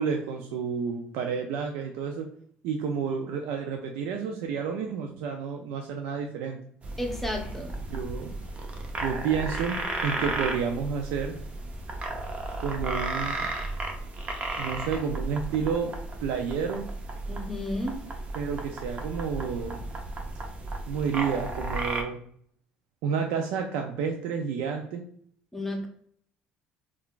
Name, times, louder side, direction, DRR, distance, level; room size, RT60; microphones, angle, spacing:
voice 1, 0.0-2.3 2.6-6.6 7.9-8.4 9.0-11.4 12.6-13.5 14.6-15.9 16.2-16.8 18.3-19.8 20.9-22.2 23.0-25.0, right 6 dB, 75° right, 3 dB, 0.3 m, -30 dB
sound 1, 6.8-22.0, right 2 dB, 35° right, 0.7 m, -34 dB
voice 2, 7.0-7.7 17.3-18.0 25.5-25.9, left 1 dB, 5° left, 1 dB, 0.8 m, -32 dB
3.6 x 2.3 x 2.3 m, 0.62 s
supercardioid pair, 85°, 4 cm